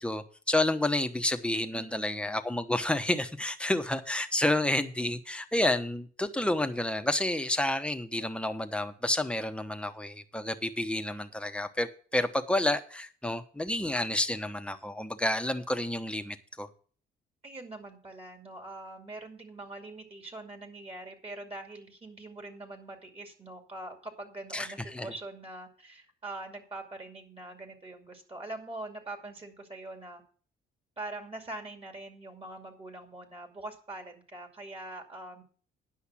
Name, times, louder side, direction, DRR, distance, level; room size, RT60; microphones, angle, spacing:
voice 1, 0.0-16.7 24.5-25.1, left 1 dB, 5° left, 8 dB, 1.0 m, -30 dB
voice 2, 1.7-2.4 17.4-30.2 31.0-35.4, right 2 dB, 30° right, 4 dB, 2.5 m, -43 dB
10.0 x 5.8 x 7.2 m, 0.43 s
cardioid pair, 90°, 20 cm